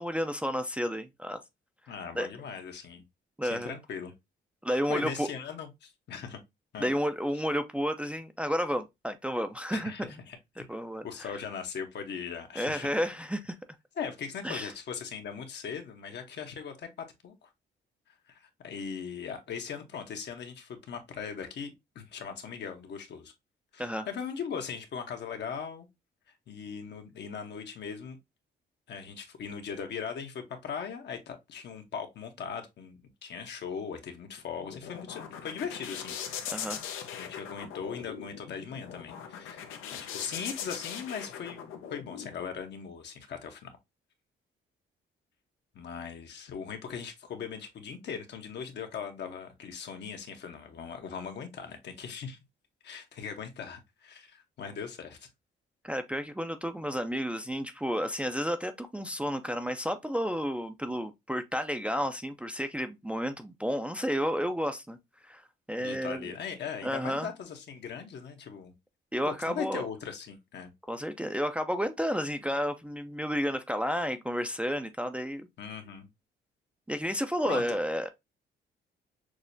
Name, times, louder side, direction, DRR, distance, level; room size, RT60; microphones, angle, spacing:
voice 1, 0.0-1.4 2.1-2.3 3.4-3.8 4.6-5.3 6.8-10.1 10.6-11.3 12.6-13.6 14.4-14.7 23.8-24.1 36.5-36.8 55.8-65.0 65.3-65.4 65.7-66.3 66.8-67.3 69.1-69.9 70.9-75.5 76.9-78.1, equal, 5° right, 0.4 m, -31 dB
voice 2, 1.9-3.0 3.4-4.1 4.7-6.4 6.7-6.9 9.7-10.4 11.0-12.9 14.0-17.5 18.3-23.3 23.7-25.9 26.5-28.2 28.9-36.2 37.1-39.6 39.9-43.7 45.7-52.4 52.8-55.3 65.8-68.7 69.2-70.7 75.6-76.1 77.4-77.8, left 6 dB, 60° left, 0.9 m, -39 dB
sound 1, 34.4-42.3, left 8 dB, 85° left, 0.7 m, -40 dB
6.1 x 2.0 x 2.6 m
cardioid pair, 90°, 20 cm